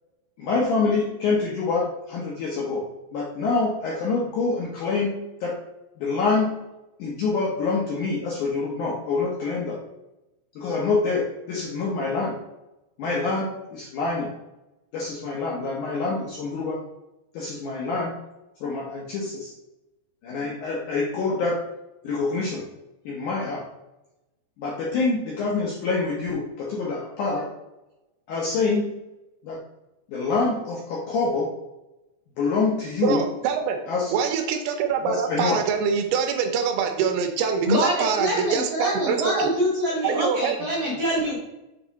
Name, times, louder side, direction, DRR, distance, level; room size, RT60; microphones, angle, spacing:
voice 1, 0.4-2.8 3.1-5.6 6.0-6.6 7.0-9.8 10.6-12.4 13.0-14.3 14.9-16.8 17.3-18.1 18.6-19.5 20.2-21.6 22.0-22.6 23.1-23.7 24.6-27.5 28.3-29.0 29.4-29.6 30.1-31.5 32.4-33.2 33.9-34.1 35.0-35.6, left 3 dB, 80° left, -3 dB, 1.8 m, -26 dB
voice 2, 33.0-33.8 34.1-39.5 40.0-40.6, right 6 dB, 80° right, 5 dB, 2.5 m, -25 dB
voice 3, 37.6-41.4, equal, 60° right, -6 dB, 1.6 m, -25 dB
7.2 x 3.6 x 4.0 m, 0.95 s
omnidirectional pair, 5.0 m